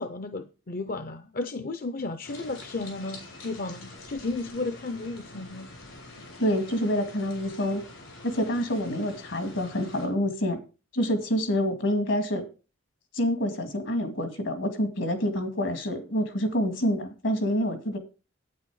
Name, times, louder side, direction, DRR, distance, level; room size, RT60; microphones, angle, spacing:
voice 1, 0.0-5.7, left 3 dB, 45° left, 0.6 m, -34 dB
sound 1, 2.2-10.1, left 2 dB, 90° left, 4.5 m, -46 dB
voice 2, 6.4-7.8 8.2-10.6 10.9-12.5 13.1-18.0, equal, 70° left, 2.0 m, -27 dB
9.0 x 8.5 x 4.8 m
head